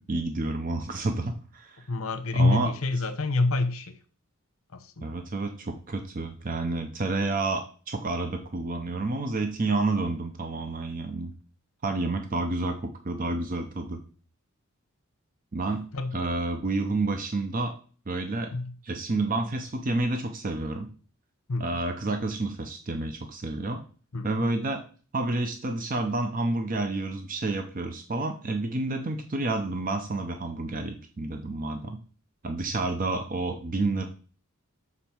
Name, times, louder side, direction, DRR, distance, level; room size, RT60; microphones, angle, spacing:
voice 1, 0.0-1.9 2.3-2.7 5.0-11.3 11.8-14.0 15.5-15.8 16.1-17.7 18.1-18.5 18.8-20.9 21.6-23.8 24.2-24.8 25.1-32.0 32.4-34.0, right 2 dB, 40° right, 6 dB, 0.6 m, -29 dB
voice 2, 1.9-4.0 4.7-5.1 15.9-16.1 18.5-18.7 21.5-21.8 24.1-24.5, left 2 dB, 75° left, 9 dB, 0.8 m, -27 dB
7.1 x 4.1 x 4.5 m, 0.40 s
head